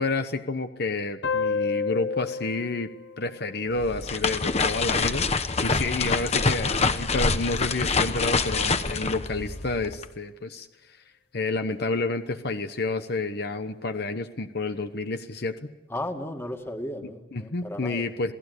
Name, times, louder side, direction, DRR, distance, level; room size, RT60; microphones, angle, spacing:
voice 1, 0.0-2.9 3.2-5.3 5.6-10.7 11.3-15.7 17.0-18.3, left 3 dB, 60° left, 8 dB, 1.1 m, -29 dB
sound 1, 1.2-4.4, left 5 dB, 80° left, 0.9 m, -31 dB
sound 2, 3.7-10.1, left 4 dB, 35° left, 1.2 m, -26 dB
voice 2, 15.9-18.0, left 1 dB, 15° left, 5 dB, 2.2 m, -34 dB
28.0 x 18.0 x 8.3 m, 1.0 s
head